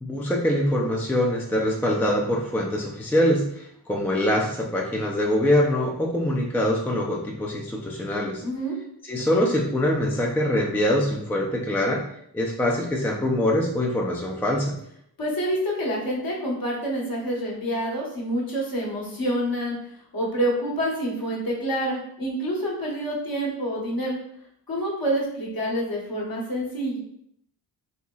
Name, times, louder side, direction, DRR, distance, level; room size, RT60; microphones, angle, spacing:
voice 1, 0.0-8.4 9.0-12.1 12.3-14.7, left 1 dB, 5° left, -1 dB, 0.4 m, -24 dB
voice 2, 8.4-8.8 15.2-19.7 20.1-24.2 24.7-27.0, equal, 50° left, -3 dB, 1.3 m, -27 dB
4.1 x 2.9 x 2.3 m, 0.70 s
cardioid pair, 85°, 44 cm